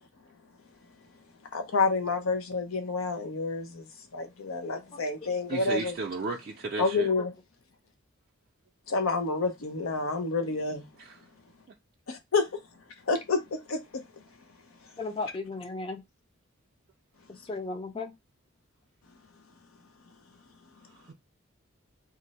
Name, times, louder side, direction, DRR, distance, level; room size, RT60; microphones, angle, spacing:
voice 1, 1.5-3.8 4.1-5.9 6.8-7.3 8.9-10.9 12.1-12.6 13.1-13.8, left 3 dB, 90° left, 0.6 m, -29 dB
voice 2, 4.9-5.3 7.2-7.3 15.0-16.0 17.3-18.1, left 3 dB, 25° left, 0.4 m, -36 dB
voice 3, 5.5-7.1 11.0-11.2 21.1-21.2, right 3 dB, 45° right, 0.4 m, -34 dB
2.5 x 2.0 x 3.9 m
head